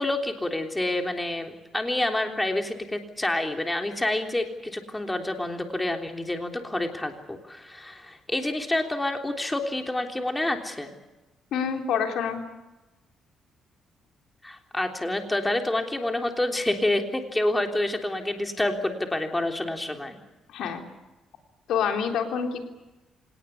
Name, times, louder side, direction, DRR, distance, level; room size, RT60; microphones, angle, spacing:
voice 1, 0.0-10.9 14.4-20.2, left 1 dB, 10° left, 4 dB, 3.4 m, -28 dB
voice 2, 11.5-12.4 20.5-20.8 21.7-22.6, left 7 dB, 80° left, 4 dB, 3.5 m, -27 dB
26.0 x 18.5 x 8.4 m, 1.1 s
cardioid pair, 90°, 0 cm